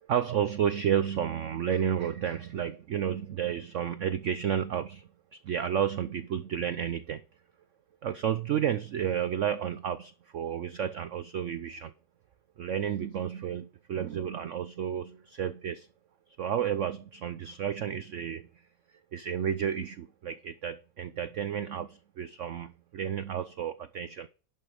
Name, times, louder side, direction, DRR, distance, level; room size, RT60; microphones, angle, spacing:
voice 1, 0.0-7.2 8.0-11.9 12.6-15.9 16.4-18.6 19.1-24.3, right 9 dB, 90° right, 0.6 m, -31 dB
11.5 x 5.7 x 4.9 m
omnidirectional pair, 2.0 m